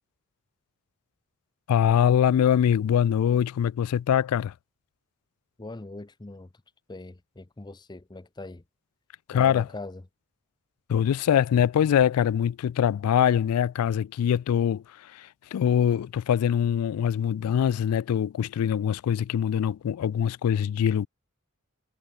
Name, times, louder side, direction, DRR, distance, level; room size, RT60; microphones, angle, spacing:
voice 1, 1.7-4.5 9.3-9.7 10.9-21.1, left 9 dB, 85° left, 0.3 m, -23 dB
voice 2, 5.6-6.5 6.9-8.6 9.3-10.0, left 2 dB, 20° left, 0.6 m, -41 dB
head